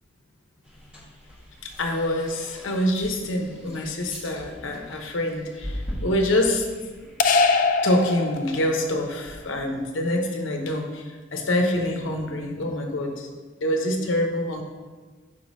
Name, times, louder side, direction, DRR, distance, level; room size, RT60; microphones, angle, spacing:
sound 1, 0.6-9.5, equal, 5° right, 1.2 m, -41 dB
voice 1, 1.6-6.7 7.8-13.3 13.6-14.6, left 1 dB, 75° left, 3 dB, 0.8 m, -26 dB
sound 2, 7.2-8.9, left 4 dB, 40° left, 0.3 m, -22 dB
5.6 x 3.3 x 5.2 m, 1.4 s
head